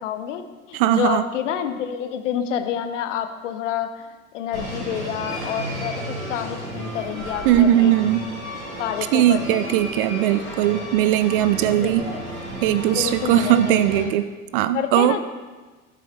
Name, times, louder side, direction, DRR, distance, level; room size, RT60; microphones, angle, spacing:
voice 1, 0.0-0.4 0.7-4.1 4.3-7.9 8.8-9.8 11.8-12.2 12.9-14.1 14.7-15.2, left 9 dB, 60° left, 8 dB, 0.9 m, -28 dB
voice 2, 0.7-1.2 7.5-8.3 9.1-12.1 12.6-14.3 14.5-15.2, right 12 dB, 40° right, 14 dB, 0.4 m, -19 dB
sound 1, 4.5-14.0, equal, 80° right, 2.5 m, -33 dB
13.0 x 7.5 x 3.2 m, 1.3 s
figure-of-eight pair, 75°, 42 cm